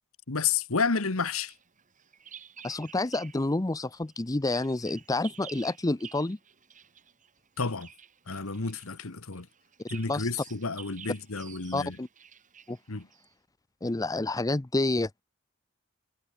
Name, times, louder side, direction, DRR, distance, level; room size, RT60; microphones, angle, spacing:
voice 1, 0.3-1.5 7.6-7.9 8.3-9.5 9.9-12.0 12.9-13.1, left 5 dB, 70° left, 1.5 m, -30 dB
Bird vocalization bird call bird song, 1.3-3.5 3.8-13.3, right 8 dB, 35° right, 3.3 m, -52 dB
voice 2, 2.6-6.4 9.9-10.3 11.7-12.1 12.7-12.8 13.8-15.2, left 2 dB, 15° left, 0.6 m, -29 dB
head